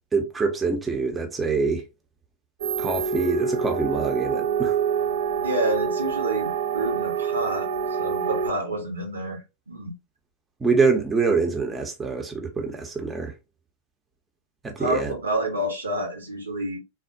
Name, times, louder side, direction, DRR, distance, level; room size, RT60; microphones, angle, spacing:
voice 1, 0.1-1.8 2.8-4.7 10.6-13.3 14.6-15.1, right 4 dB, 15° right, 0.6 m, -25 dB
sound 1, 2.6-8.5, right 7 dB, 60° right, 0.3 m, -26 dB
voice 2, 5.4-7.7 8.0-9.4 9.7-9.9 14.8-16.8, right 1 dB, 75° right, 0.8 m, -28 dB
3.4 x 2.1 x 2.5 m
figure-of-eight pair, 90°, 0 cm